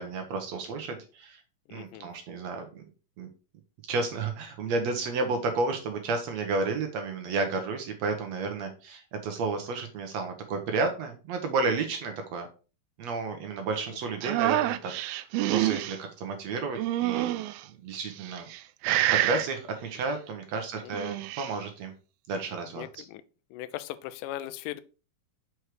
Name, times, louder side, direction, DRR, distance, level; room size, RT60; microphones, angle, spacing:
voice 1, 0.0-1.4 1.7-2.8 3.2-3.3 3.9-12.5 13.0-14.9 15.2-17.4 17.7-18.5 19.1-21.9 22.3-23.0, right 3 dB, 65° right, 5 dB, 1.7 m, -32 dB
voice 2, 1.7-2.1 13.9-14.2 20.8-20.9 22.8-23.2 23.5-24.8, left 14 dB, 85° left, 12 dB, 1.8 m, -39 dB
sound 1, 14.2-16.0 16.8-17.6 18.3-18.6 18.8-19.5 20.8-21.5, right 15 dB, 85° right, 2.4 m, -27 dB
6.4 x 4.7 x 4.7 m, 0.34 s
omnidirectional pair, 4.3 m